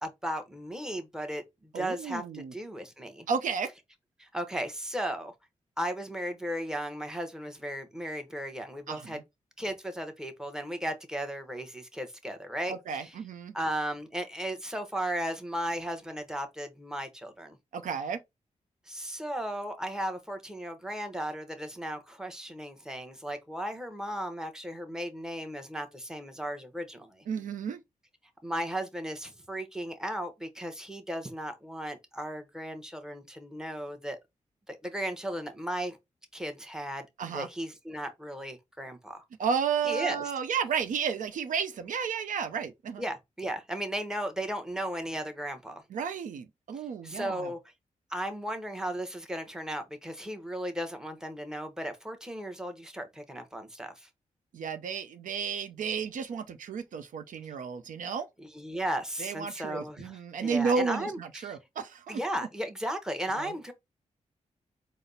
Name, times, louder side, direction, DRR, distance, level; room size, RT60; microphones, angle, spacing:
voice 1, 0.0-3.3 4.2-5.3 5.8-9.2 9.6-13.1 13.5-17.6 18.9-27.2 28.4-34.2 34.7-36.0 36.3-37.1 37.3-39.2 39.8-40.2 43.0-45.8 47.0-47.6 48.1-54.1 58.4-61.6 62.1-63.7, right 1 dB, 5° right, 0.9 m, -35 dB
voice 2, 1.7-2.5 3.3-3.7 8.9-9.2 12.7-13.5 17.7-18.2 27.3-27.8 37.2-37.5 39.4-43.0 45.9-47.5 54.5-58.3 59.2-62.2 63.3-63.5, right 6 dB, 85° right, 0.5 m, -32 dB
4.1 x 2.0 x 3.8 m
cardioid pair, 75°, 13 cm